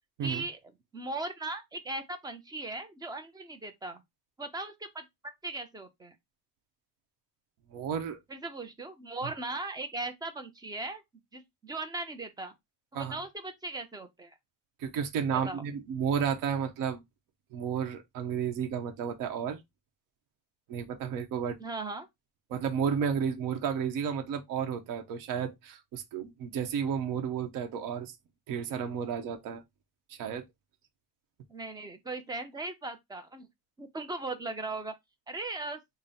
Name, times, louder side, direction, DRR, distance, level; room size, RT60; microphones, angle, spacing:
voice 1, 0.2-0.6 0.9-4.0 4.4-6.2 8.3-11.0 11.3-12.5 12.9-14.3 15.3-15.6 21.6-22.1 31.5-33.5 33.8-34.9 35.3-35.8, right 2 dB, 10° right, 0.4 m, -38 dB
voice 2, 7.7-8.2 12.9-13.2 14.8-17.0 17.5-19.6 20.7-21.6 22.5-28.1 28.5-29.6 30.1-30.4, right 7 dB, 60° right, 0.9 m, -32 dB
3.8 x 2.0 x 4.0 m
cardioid pair, 160°, 39 cm